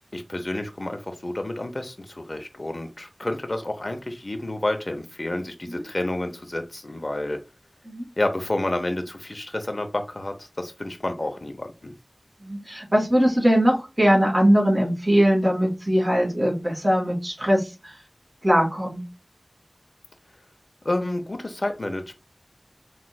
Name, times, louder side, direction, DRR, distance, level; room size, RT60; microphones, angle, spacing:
voice 1, 0.1-7.4 8.2-11.9 20.8-22.1, left 1 dB, 55° left, 0.6 m, -29 dB
voice 2, 12.4-17.9 18.4-19.0, equal, 40° right, 2.5 m, -21 dB
6.0 x 2.4 x 2.3 m
wide cardioid pair, 40°, 0 cm